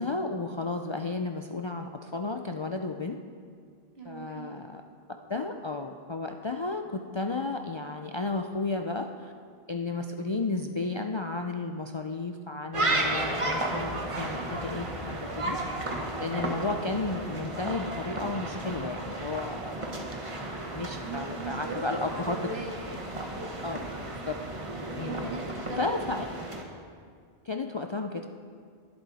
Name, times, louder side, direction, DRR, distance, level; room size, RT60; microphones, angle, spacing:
voice 1, 0.0-3.2 4.0-4.8 5.3-9.3 9.7-15.6 16.2-19.7 20.7-22.4 23.6-23.8 24.3-24.4 25.0-25.3 25.8-26.3 27.5-28.3, left 3 dB, 40° left, 4 dB, 0.4 m, -33 dB
voice 2, 4.0-4.5 21.0-24.0 25.0-26.0, right 3 dB, 80° right, -1 dB, 2.2 m, -39 dB
sound 1, 12.7-26.6, right 2 dB, 30° right, 1.2 m, -33 dB
22.0 x 7.8 x 4.1 m, 2.1 s
omnidirectional pair, 1.0 m